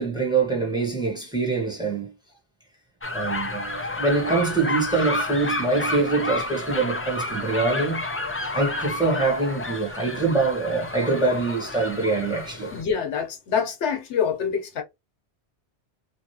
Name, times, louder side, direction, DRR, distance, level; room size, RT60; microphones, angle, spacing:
voice 1, 0.0-2.1 3.1-8.1 8.5-12.7, right 3 dB, 5° right, 1.1 m, -24 dB
sound 1, 3.0-12.8, left 2 dB, 20° left, 0.3 m, -30 dB
voice 2, 12.7-14.8, left 6 dB, 85° left, 1.1 m, -26 dB
3.2 x 2.4 x 2.7 m
omnidirectional pair, 1.1 m